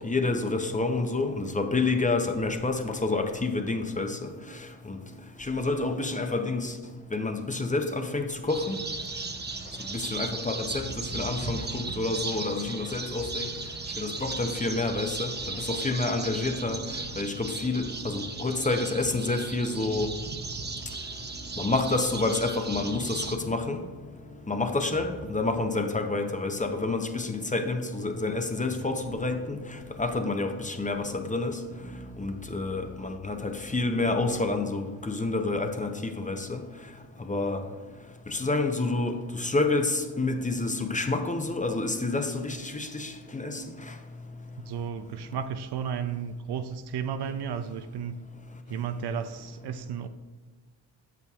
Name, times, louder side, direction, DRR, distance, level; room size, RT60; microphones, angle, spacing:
voice 1, 0.0-5.0 5.4-6.8 7.1-8.8 9.9-13.5 14.0-16.8 17.2-20.1 21.6-23.8 24.5-31.6 32.2-36.6 37.2-37.6 38.3-43.9, left 3 dB, 15° left, 5 dB, 0.6 m, -29 dB
sound 1, 8.5-23.4, right 3 dB, 20° right, 0.7 m, -36 dB
sound 2, 16.6-34.3, left 1 dB, 80° left, 1.6 m, -47 dB
voice 2, 44.7-48.2 48.7-50.1, right 7 dB, 55° right, 10 dB, 0.5 m, -33 dB
8.2 x 6.8 x 2.4 m, 1.4 s
supercardioid pair, 65°, 48 cm